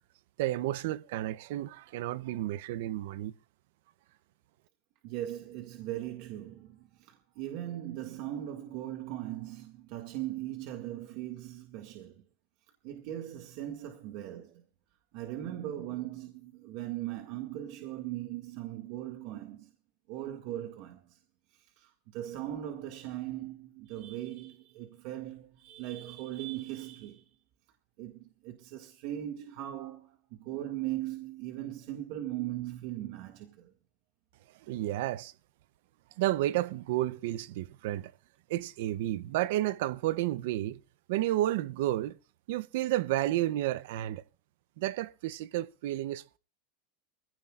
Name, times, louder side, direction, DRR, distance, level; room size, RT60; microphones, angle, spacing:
voice 1, 0.4-3.3 34.6-35.3 36.2-38.1 38.5-40.8 41.1-42.2 42.5-44.2 44.8-46.4, right 15 dB, 70° right, 0.7 m, -31 dB
voice 2, 5.0-12.2 12.8-14.6 15.1-19.7 20.1-21.2 21.5-27.3 28.0-33.7, right 13 dB, 55° right, 1.9 m, -39 dB
25.0 x 16.5 x 2.5 m
supercardioid pair, 160°, 0 cm